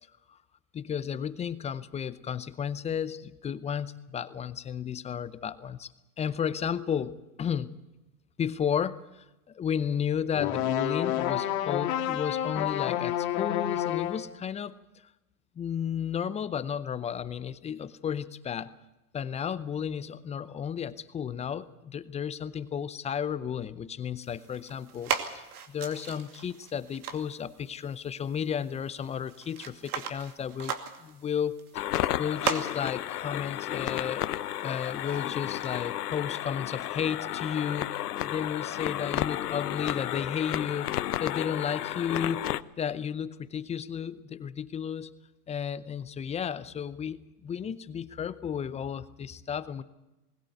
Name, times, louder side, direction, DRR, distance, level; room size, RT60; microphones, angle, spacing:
voice 1, 0.7-5.9 6.2-7.7 8.4-14.8 15.6-18.7 19.1-34.2 34.6-42.5 42.8-45.1 45.5-49.8, left 8 dB, 15° left, 15 dB, 0.6 m, -33 dB
sound 1, 10.3-14.3, left 11 dB, 55° left, 2.4 m, -29 dB
sound 2, 24.2-35.8, right 7 dB, 70° right, 2.6 m, -39 dB
sound 3, 31.7-42.6, left 13 dB, 80° left, 0.8 m, -32 dB
20.5 x 16.5 x 9.2 m, 0.98 s
hypercardioid pair, 115°, 46 cm